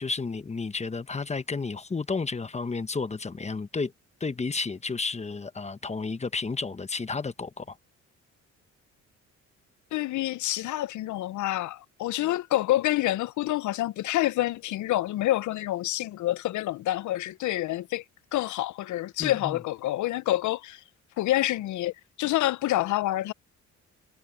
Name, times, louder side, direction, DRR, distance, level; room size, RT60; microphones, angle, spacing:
voice 1, 0.0-3.9 4.2-7.8 19.2-19.6, left 4 dB, 20° left, 1.1 m, -32 dB
voice 2, 9.9-18.0 18.3-20.8 21.2-21.9 22.2-23.3, left 15 dB, 75° left, 0.6 m, -27 dB
cardioid pair, 90°, 30 cm